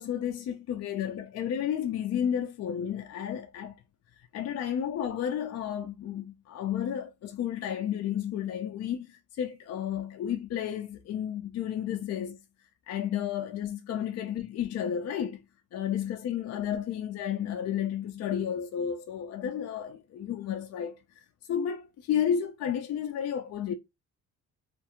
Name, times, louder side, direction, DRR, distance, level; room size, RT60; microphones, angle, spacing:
voice 1, 0.0-3.7 4.3-12.4 12.9-15.4 15.7-21.0 21.5-23.7, left 9 dB, 55° left, 0.4 m, -32 dB
2.5 x 2.3 x 2.8 m
cardioid pair, 90°, 30 cm